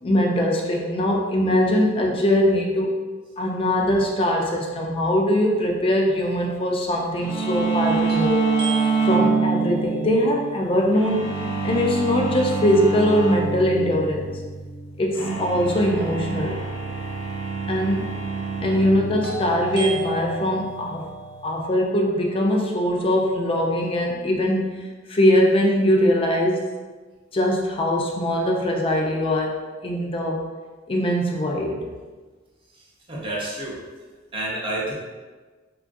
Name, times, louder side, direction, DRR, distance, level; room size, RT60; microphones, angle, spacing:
voice 1, 0.0-3.0 3.4-8.5 9.0-14.3 15.0-16.6 17.7-18.1 18.6-21.1 21.4-26.7 27.3-30.4 30.9-31.8, equal, 30° left, 0 dB, 0.4 m, -22 dB
sound 1, 6.1-6.2 8.1-12.0 19.2-23.2, right 2 dB, 60° right, 0.9 m, -36 dB
sound 2, 7.2-21.6, right 4 dB, 75° left, 1.0 m, -27 dB
voice 2, 33.1-33.8 34.3-34.9, right 1 dB, 25° right, -5 dB, 0.6 m, -29 dB
3.7 x 2.3 x 2.5 m, 1.3 s
head